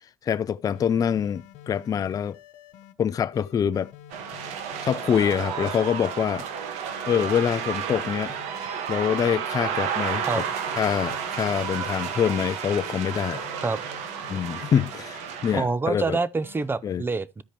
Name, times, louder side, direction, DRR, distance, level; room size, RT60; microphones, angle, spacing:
voice 1, 0.2-2.4 3.0-3.9 4.8-6.5 7.1-8.3 8.9-10.4 10.8-13.5 14.3-16.2 16.8-17.0, left 8 dB, 30° left, 0.4 m, -25 dB
sound 1, 0.6-2.9 3.3-6.1 6.5-9.3 9.7-12.5 12.8-15.6 16.0-16.7, left 10 dB, 80° left, 1.0 m, -48 dB
sound 2, 4.1-15.6, right 7 dB, 75° right, 1.3 m, -32 dB
voice 2, 15.5-17.4, right 4 dB, 20° right, 0.6 m, -26 dB
13.0 x 5.0 x 2.9 m
cardioid pair, 110°, 12 cm